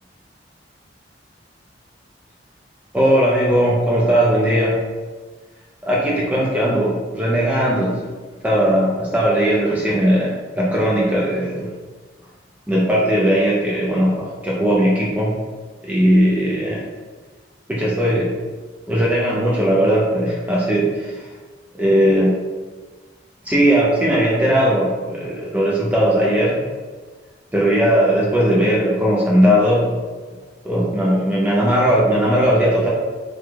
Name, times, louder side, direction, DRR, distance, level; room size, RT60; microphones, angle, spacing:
voice 1, 2.9-4.8 5.8-8.1 8.4-11.7 12.7-15.4 15.8-16.9 17.7-18.4 18.9-21.3 21.7-22.3 23.4-26.6 27.5-30.0 30.6-32.9, equal, 10° right, -5 dB, 0.3 m, -18 dB
3.2 x 2.0 x 3.2 m, 1.4 s
head